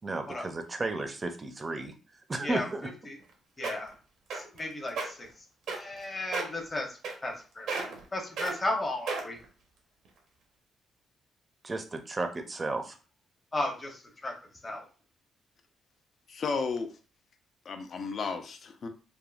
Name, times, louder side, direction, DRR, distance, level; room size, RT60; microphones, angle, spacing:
voice 1, 0.0-1.9 2.3-2.9 11.6-13.0, right 2 dB, 25° right, 6 dB, 0.5 m, -33 dB
voice 2, 2.4-3.2 3.6-3.9 4.3-7.7 8.1-9.4 13.5-14.3 14.6-14.9, left 1 dB, 25° left, 2 dB, 0.8 m, -35 dB
sound 1, 3.2-3.3 3.6-3.9 4.3-4.6 4.9-5.1 5.7-6.0 6.3-6.6 7.0-7.4 7.7-8.0 8.4-8.5 9.1-9.4 10.1-10.2, right 4 dB, 80° right, 0.8 m, -33 dB
voice 3, 16.3-17.0 17.6-18.9, left 4 dB, 50° left, 7 dB, 0.5 m, -33 dB
3.5 x 2.1 x 2.4 m, 0.36 s
cardioid pair, 90°, 0 cm